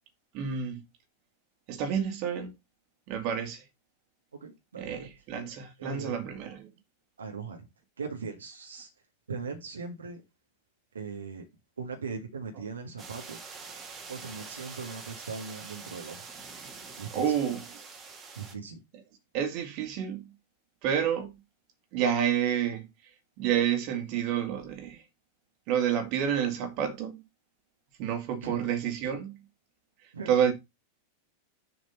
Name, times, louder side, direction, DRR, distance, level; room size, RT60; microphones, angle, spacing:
voice 1, 0.3-0.8 1.7-2.5 3.1-3.6 4.8-6.7 17.1-17.8 19.3-20.3 20.8-21.3 21.9-22.9 23.4-25.0 25.7-27.2 28.0-29.4 30.3-30.5, right 8 dB, 45° right, 2.3 m, -29 dB
voice 2, 4.4-5.1 5.8-6.4 7.2-7.6 8.0-8.9 9.3-10.2 10.9-11.5 11.8-13.4 14.1-16.3 17.0-17.3 18.4-18.8 28.4-28.6 30.1-30.3, right 5 dB, 70° right, 1.8 m, -39 dB
sound 1, 13.0-18.5, right 4 dB, 25° right, 2.1 m, -45 dB
7.0 x 5.2 x 5.5 m
figure-of-eight pair, 90°, 0 cm